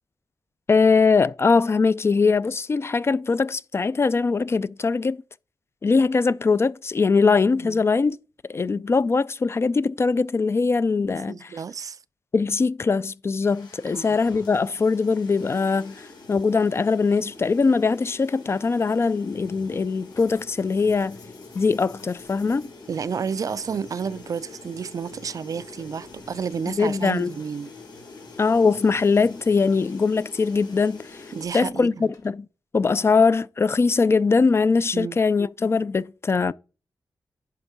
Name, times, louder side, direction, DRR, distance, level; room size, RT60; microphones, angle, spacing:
voice 1, 0.7-5.2 5.8-8.2 8.5-11.5 12.3-16.0 16.3-21.2 21.5-22.7 26.8-27.3 28.4-31.1 31.5-31.9 32.2-32.5 32.7-36.5, left 4 dB, 35° left, 0.3 m, -21 dB
voice 2, 11.3-12.0 13.9-14.2 22.9-27.7 31.3-32.1 34.9-35.2, right 6 dB, 50° right, 0.4 m, -31 dB
sound 1, 13.4-31.4, left 3 dB, 75° left, 3.0 m, -45 dB
sound 2, 19.3-32.3, left 3 dB, 55° left, 2.3 m, -51 dB
10.5 x 3.6 x 5.8 m
cardioid pair, 90°, 8 cm